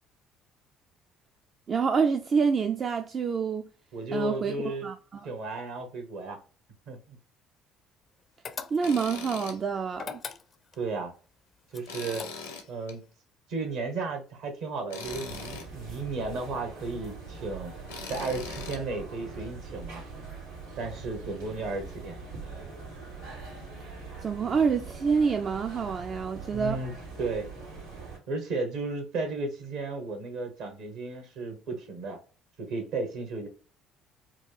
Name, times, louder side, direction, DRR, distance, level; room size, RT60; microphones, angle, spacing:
voice 1, 1.7-3.7 4.1-5.3 8.7-10.2 24.2-26.8, right 5 dB, 45° right, 0.4 m, -27 dB
voice 2, 3.9-4.9 5.2-6.4 6.9-7.2 10.8-11.1 11.7-12.3 12.7-13.0 13.5-17.7 18.1-20.0 20.8-22.2 26.5-27.5 28.3-32.2 32.6-33.5, right 3 dB, 70° right, 1.4 m, -34 dB
sound 1, 8.4-9.1 9.9-10.8 11.7-12.7, left 6 dB, 45° left, 0.5 m, -40 dB
Tools, 8.8-9.6 10.0-10.1 11.9-12.9 14.9-15.7 17.9-18.8, left 5 dB, 85° left, 0.8 m, -40 dB
sound 2, 15.0-28.2, right 4 dB, 90° right, 2.2 m, -42 dB
4.6 x 2.3 x 3.2 m
hypercardioid pair, 60°, 0 cm